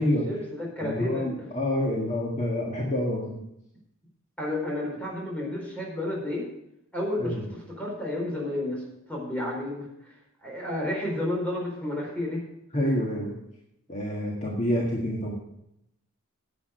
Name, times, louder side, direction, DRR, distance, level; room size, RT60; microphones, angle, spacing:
voice 1, 0.0-1.5 4.4-6.5 6.9-8.8 9.1-10.1 10.4-12.4, left 1 dB, 5° left, -2 dB, 4.4 m, -31 dB
voice 2, 0.8-3.4 7.2-7.4 12.7-13.3 13.9-15.3, left 1 dB, 35° left, -2 dB, 1.7 m, -27 dB
10.5 x 8.5 x 6.5 m, 0.80 s
head